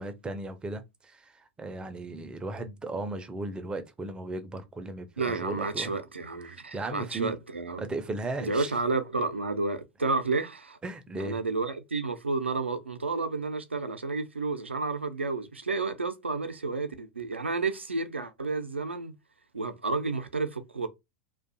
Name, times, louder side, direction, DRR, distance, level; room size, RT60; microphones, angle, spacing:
voice 1, 0.0-5.9 6.5-7.3 7.8-8.7 10.8-11.4, right 2 dB, 15° right, 0.4 m, -36 dB
voice 2, 5.2-7.9 8.4-10.8 11.2-19.1 19.5-20.9, right 3 dB, 85° right, 0.4 m, -31 dB
2.5 x 2.2 x 2.5 m
figure-of-eight pair, 90°, 6 cm